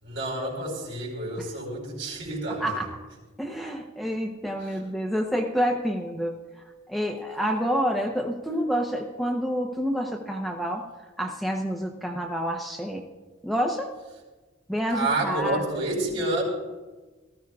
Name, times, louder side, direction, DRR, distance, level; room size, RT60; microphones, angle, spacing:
voice 1, 0.0-2.8 4.6-4.8 14.9-16.4, right 2 dB, 65° right, -2 dB, 4.6 m, -29 dB
voice 2, 3.4-6.4 6.9-10.8 11.2-13.0 13.4-13.9 14.7-15.6, equal, ahead, 1 dB, 0.7 m, -28 dB
18.5 x 14.0 x 2.4 m, 1.2 s
head